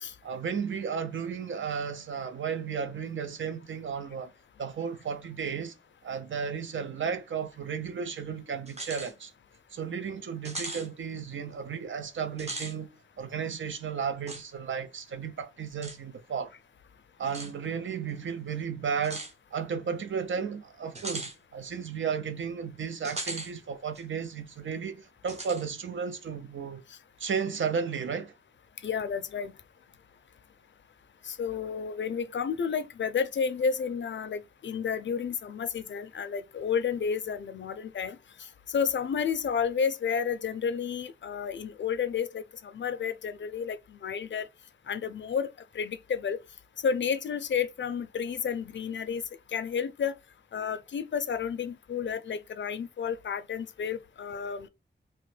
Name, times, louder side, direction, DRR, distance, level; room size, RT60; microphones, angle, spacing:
voice 1, 0.2-4.3 4.6-5.8 6.0-9.3 9.7-16.5 17.2-26.8 27.2-28.3, right 6 dB, 85° right, 0.5 m, -34 dB
sound 1, 8.7-9.1 9.5-9.6 10.4-10.9 12.3-12.7 14.3-14.4 15.8-16.0 17.3-17.5 19.0-19.3 20.9-21.3 23.0-23.5 23.9-24.0 25.3-25.6, right 2 dB, 35° right, 0.6 m, -38 dB
voice 2, 28.8-29.5 31.2-38.2 38.7-44.5 44.9-46.4 46.8-49.2 49.5-50.2 50.5-54.7, left 6 dB, 70° left, 0.4 m, -31 dB
2.9 x 2.1 x 3.1 m
wide cardioid pair, 110°, 20 cm